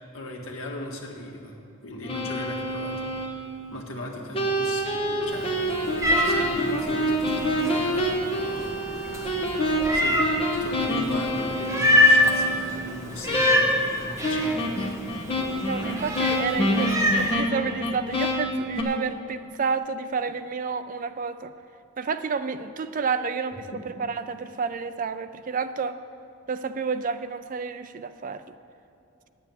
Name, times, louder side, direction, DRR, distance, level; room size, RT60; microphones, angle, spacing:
voice 1, 0.1-1.6 1.8-3.3 3.7-5.5 6.2-8.8 9.0-9.5 9.9-10.2 10.6-15.1, left 1 dB, 65° left, -1 dB, 1.8 m, -38 dB
sound 1, 2.0-3.3 4.3-12.5 13.3-13.9 14.2-18.8, equal, 25° left, 1.5 m, -27 dB
Meow, 5.3-17.3, left 1 dB, 15° right, 1.2 m, -26 dB
voice 2, 15.6-21.5 22.0-23.7 24.0-26.0 26.5-28.4, right 5 dB, 40° right, 11 dB, 0.4 m, -30 dB
10.0 x 7.0 x 9.1 m, 2.8 s
head